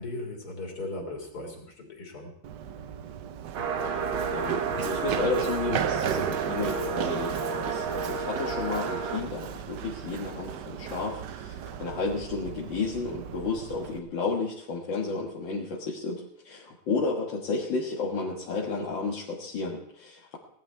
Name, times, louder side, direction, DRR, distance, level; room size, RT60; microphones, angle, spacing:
voice 1, 0.0-2.3, left 2 dB, 45° left, 1 dB, 3.7 m, -37 dB
Run, 2.4-14.0, right 9 dB, 65° right, 1.2 m, -36 dB
sound 1, 3.5-9.2, right 5 dB, 90° right, 2.1 m, -31 dB
voice 2, 4.3-20.4, left 4 dB, 65° left, -4 dB, 2.3 m, -32 dB
18.0 x 11.5 x 4.6 m, 0.68 s
omnidirectional pair, 2.2 m